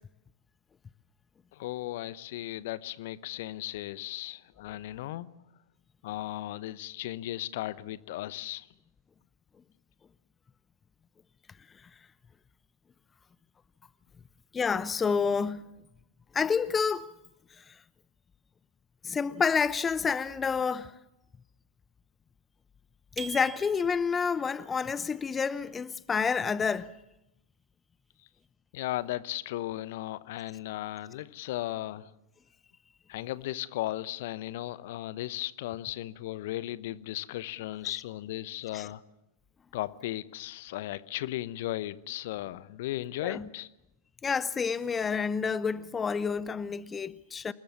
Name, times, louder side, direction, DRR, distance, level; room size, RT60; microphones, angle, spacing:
voice 1, 1.5-5.3 6.0-8.7 28.7-32.1 33.1-39.0 39.7-43.7, left 15 dB, 55° left, 1.0 m, -36 dB
voice 2, 14.5-15.7 16.3-17.1 19.0-21.0 23.2-27.0 38.7-38.9 43.2-43.4 44.2-47.5, left 6 dB, 15° left, 0.8 m, -29 dB
sound 1, 23.2-24.3, right 7 dB, 20° right, 1.5 m, -43 dB
28.0 x 20.5 x 7.4 m
figure-of-eight pair, 95°, 0 cm